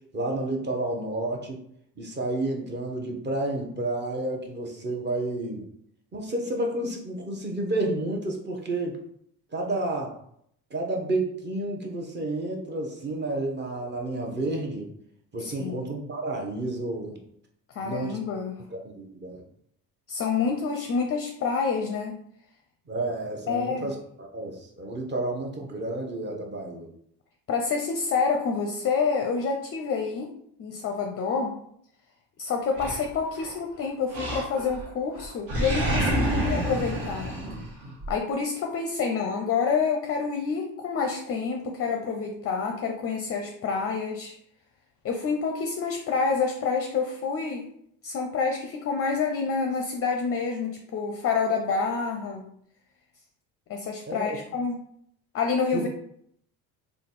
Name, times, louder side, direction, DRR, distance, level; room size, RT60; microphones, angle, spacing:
voice 1, 0.1-1.6 2.0-5.6 6.1-9.0 9.5-10.1 10.7-14.9 15.3-17.2 17.8-18.2 18.8-19.4 22.9-26.9 54.1-54.4 55.7-55.9, right 2 dB, 25° right, 1 dB, 0.9 m, -30 dB
voice 2, 15.4-15.8 17.8-18.6 20.1-22.2 23.5-23.9 27.5-30.3 30.6-31.5 32.4-37.3 38.1-44.3 45.0-47.6 48.0-52.4 53.7-54.8 55.3-55.9, left 5 dB, 35° left, 3 dB, 0.5 m, -28 dB
Animal, 32.8-33.6 34.1-34.9 35.2-38.1, right 1 dB, 60° right, 1.3 m, -28 dB
3.3 x 2.3 x 4.1 m, 0.70 s
cardioid pair, 105°, 38 cm